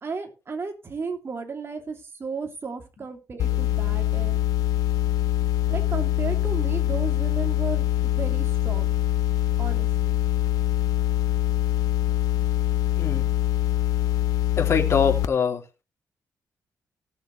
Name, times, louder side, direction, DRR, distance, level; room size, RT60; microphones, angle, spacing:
voice 1, 0.0-4.4 5.7-9.0 9.6-10.2, right 4 dB, 40° right, 4 dB, 2.7 m, -34 dB
sound 1, 3.4-15.3, left 13 dB, 90° left, 0.7 m, -24 dB
voice 2, 14.6-15.6, left 6 dB, 45° left, 1 dB, 2.8 m, -23 dB
18.0 x 6.5 x 3.2 m, 0.28 s
cardioid pair, 90°, 6 cm